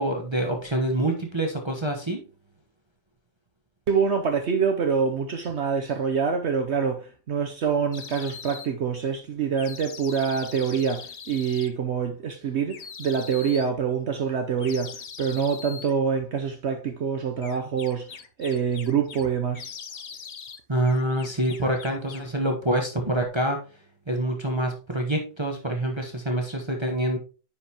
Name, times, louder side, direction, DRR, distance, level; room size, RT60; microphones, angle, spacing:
voice 1, 0.0-2.2 20.7-23.6 24.1-27.2, right 1 dB, 20° right, 1.0 m, -26 dB
voice 2, 3.9-19.7, right 6 dB, 60° right, 1.0 m, -26 dB
sound 1, 7.9-8.7 9.6-11.7 12.7-13.7 14.6-15.9 17.4-19.3 19.5-20.6 20.9-22.3, left 6 dB, 55° left, 0.4 m, -41 dB
9.7 x 5.1 x 2.9 m
omnidirectional pair, 1.4 m